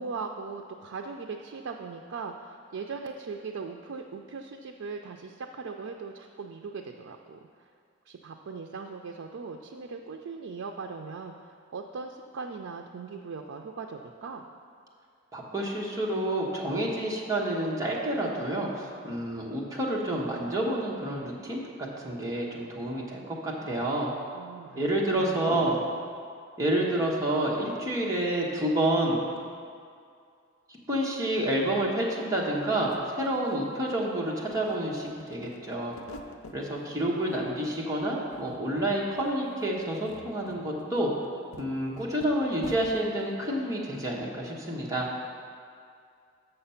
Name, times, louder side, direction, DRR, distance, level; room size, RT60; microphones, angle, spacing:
voice 1, 0.0-7.4 8.1-14.4 23.6-23.8 24.3-25.7, right 4 dB, 80° right, 3 dB, 0.4 m, -39 dB
voice 2, 15.3-24.1 24.7-25.8 26.6-29.3 30.7-36.0 36.5-41.1 41.6-45.1, right 1 dB, 15° right, -4 dB, 1.1 m, -29 dB
sound 1, 32.6-32.7 32.9-34.1 34.4-36.6 37.0-37.7 38.0-38.9 39.1-39.3 39.8-43.1, left 1 dB, 85° left, 0.5 m, -46 dB
6.7 x 6.6 x 5.6 m, 2.3 s
head